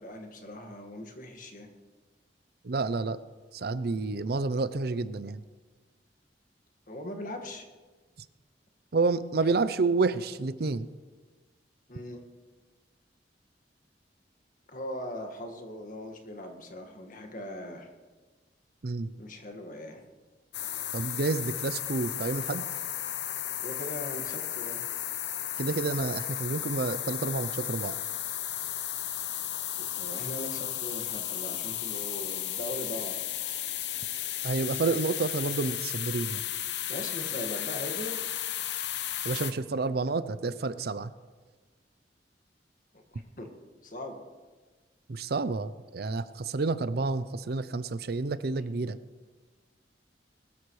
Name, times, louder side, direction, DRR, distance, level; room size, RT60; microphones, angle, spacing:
voice 1, 0.0-1.7 6.9-7.6 11.9-12.2 14.7-17.9 19.2-20.0 23.6-24.8 29.8-33.2 36.9-38.2 43.1-43.5 43.8-44.2, left 1 dB, 50° left, 4 dB, 1.8 m, -40 dB
voice 2, 2.6-3.2 3.5-5.4 8.9-10.9 18.8-19.1 20.9-22.6 25.6-28.0 34.4-36.4 39.2-41.1 45.1-49.0, right 3 dB, 60° right, 14 dB, 0.5 m, -29 dB
sound 1, 20.5-39.5, left 12 dB, 75° left, 0.8 m, -34 dB
21.0 x 13.0 x 3.2 m, 1.3 s
head